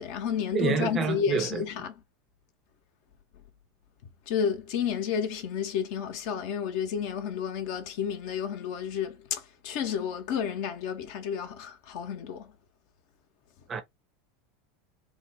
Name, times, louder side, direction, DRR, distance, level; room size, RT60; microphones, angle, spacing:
voice 1, 0.0-1.9 4.3-12.5, left 8 dB, 60° left, 0.6 m, -31 dB
voice 2, 0.5-1.6 13.7-13.8, right 6 dB, 30° right, 0.6 m, -28 dB
3.4 x 2.0 x 3.3 m
hypercardioid pair, 80°, 0 cm